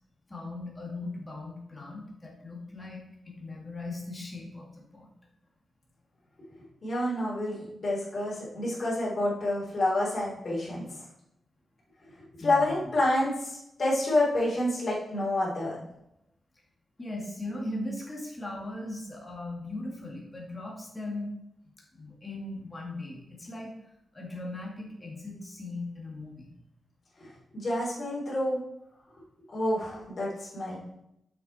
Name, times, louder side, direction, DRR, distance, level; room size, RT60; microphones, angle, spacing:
voice 1, 0.3-5.1 12.4-12.6 17.0-21.3 21.9-23.7 24.1-26.5, left 2 dB, 20° left, -1 dB, 2.1 m, -38 dB
voice 2, 6.8-11.0 12.4-15.8 27.2-27.3 27.5-28.6 29.5-30.8, left 1 dB, 45° left, -6 dB, 3.5 m, -28 dB
7.4 x 6.5 x 4.3 m, 0.82 s
cardioid pair, 95°, 0 cm